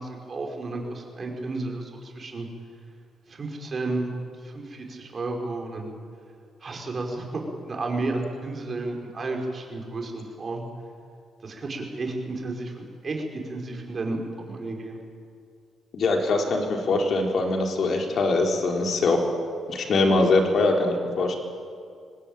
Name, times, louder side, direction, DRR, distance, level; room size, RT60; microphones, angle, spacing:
voice 1, 0.0-2.5 3.3-5.9 6.6-10.6 11.4-15.0, right 2 dB, 40° right, 1 dB, 5.6 m, -32 dB
voice 2, 15.9-19.2 19.7-21.4, left 3 dB, 60° left, 2 dB, 4.0 m, -22 dB
24.0 x 20.0 x 9.1 m, 2.3 s
cardioid pair, 90°, 0 cm